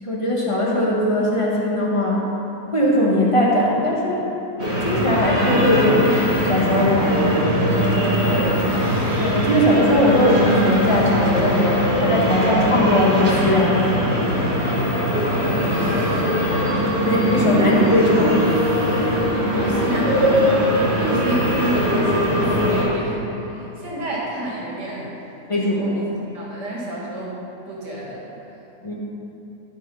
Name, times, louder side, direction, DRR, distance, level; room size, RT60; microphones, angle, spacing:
voice 1, 0.0-2.3 2.7-4.2 4.8-6.1 6.4-7.5 9.2-14.2 17.0-18.6 25.5-26.0 28.8-28.9, left 1 dB, 20° left, -4 dB, 1.4 m, -19 dB
sound 1, 4.6-22.8, equal, 40° right, 1.9 m, -21 dB
voice 2, 8.0-9.1 15.4-16.6 19.5-25.1 25.6-26.1 26.3-27.4 27.7-28.4, right 2 dB, 85° right, -5 dB, 2.6 m, -30 dB
12.0 x 4.8 x 5.6 m, 3.0 s
omnidirectional pair, 1.8 m